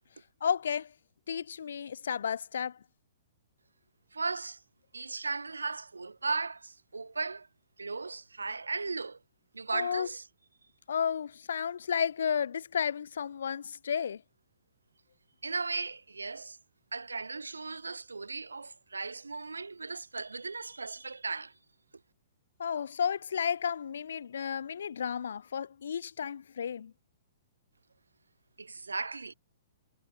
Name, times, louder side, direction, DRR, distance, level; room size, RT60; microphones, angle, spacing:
voice 1, 0.4-0.9 1.3-2.8 9.7-10.1 10.9-14.2 22.6-26.9, left 7 dB, 70° left, 0.6 m, -32 dB
voice 2, 4.1-4.6 4.9-7.5 7.8-9.2 9.5-10.2 15.4-16.6 16.9-21.5 28.6-29.3, right 4 dB, 85° right, 0.5 m, -36 dB
figure-of-eight pair, 115°, 0 cm